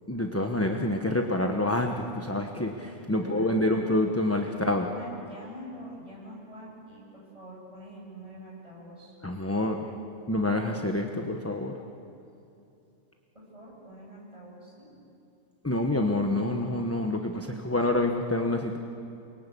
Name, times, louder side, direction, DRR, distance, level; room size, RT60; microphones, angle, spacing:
voice 1, 0.1-4.9 9.2-9.9 10.3-11.8 15.6-18.8, left 1 dB, 10° left, 3 dB, 1.0 m, -27 dB
voice 2, 3.1-4.1 4.5-9.1 13.3-15.1, right 1 dB, 25° right, -4 dB, 8.1 m, -45 dB
28.5 x 23.0 x 8.5 m, 2.7 s
omnidirectional pair, 1.5 m